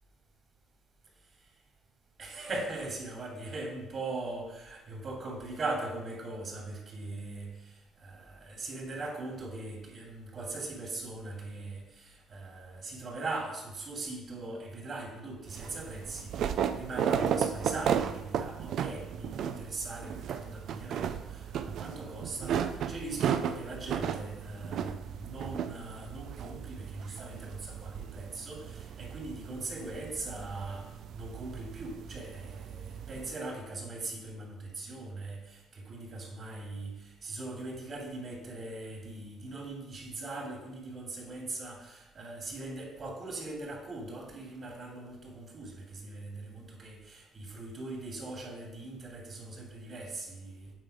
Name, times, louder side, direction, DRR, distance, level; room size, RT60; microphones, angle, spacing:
voice 1, 2.2-30.9 31.1-50.7, right 2 dB, 50° right, -1 dB, 2.8 m, -40 dB
sound 1, 15.5-33.3, right 8 dB, 65° right, 0.4 m, -35 dB
9.1 x 4.1 x 4.9 m, 1.0 s
supercardioid pair, 70°, 0 cm